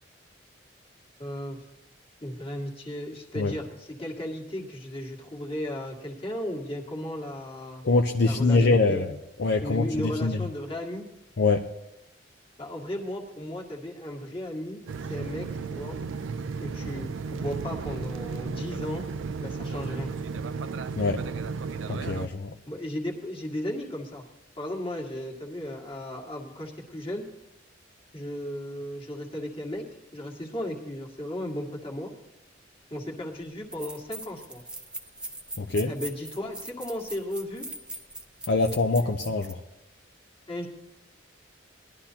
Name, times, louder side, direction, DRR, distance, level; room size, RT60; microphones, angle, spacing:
voice 1, 1.2-1.7 2.2-7.8 8.3-9.1 9.6-11.0 12.6-14.8 15.1-16.0 16.6-19.1 19.4-20.1 22.7-24.2 24.6-27.3 28.1-32.1 32.9-34.6 35.9-37.7 39.0-39.2 40.5-40.7, left 1 dB, 30° left, 0 dB, 1.9 m, -35 dB
voice 2, 7.8-9.1 9.4-10.4 11.4-11.7 21.0-21.2 21.9-22.5 35.6-35.9 38.5-39.6, left 3 dB, 60° left, 3 dB, 0.6 m, -24 dB
sound 1, 14.9-22.3, right 5 dB, 80° right, 0.4 m, -34 dB
sound 2, 33.1-33.2 33.7-39.6, right 2 dB, 5° right, 0.7 m, -40 dB
19.5 x 11.5 x 2.8 m, 0.92 s
head